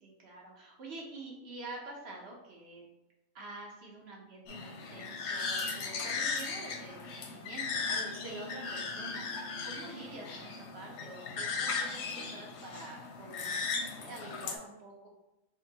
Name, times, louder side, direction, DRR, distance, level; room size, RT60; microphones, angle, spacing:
voice 1, 0.0-2.8 3.3-15.1, right 2 dB, 55° right, -1 dB, 1.0 m, -47 dB
sound 1, 4.5-14.5, left 4 dB, 65° left, 0.8 m, -37 dB
5.2 x 2.3 x 2.8 m, 0.95 s
omnidirectional pair, 1.4 m